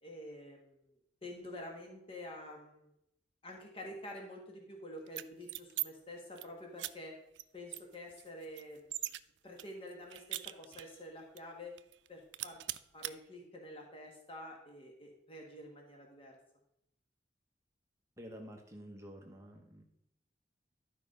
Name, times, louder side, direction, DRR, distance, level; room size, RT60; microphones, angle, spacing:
voice 1, 0.0-2.9 3.4-7.2 7.5-8.9 9.4-11.8 12.1-12.6 12.9-16.4, left 1 dB, 30° left, 0 dB, 1.6 m, -48 dB
sound 1, 5.1-5.9 6.2-6.5 6.8-6.9 7.4-7.5 7.7-9.2 9.6-11.0 11.4-11.5 11.8-12.1 12.3-13.1, right 16 dB, 90° right, 0.4 m, -40 dB
voice 2, 18.2-19.8, equal, 15° right, 2 dB, 0.9 m, -50 dB
12.0 x 4.8 x 5.3 m, 0.80 s
head